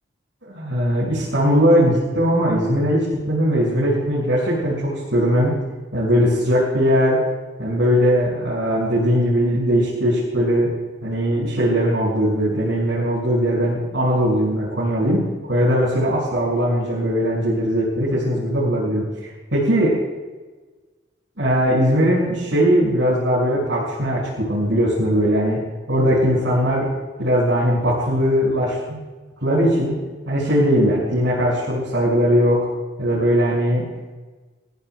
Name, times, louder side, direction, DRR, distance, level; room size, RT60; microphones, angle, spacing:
voice 1, 0.4-5.5 5.9-7.2 7.6-10.7 11.0-19.9 21.4-25.6 25.9-26.9 27.2-29.0 29.4-30.0 30.3-32.6 33.0-33.8, equal, 75° right, -8 dB, 6.9 m, -19 dB
28.0 x 18.0 x 2.5 m, 1.3 s
head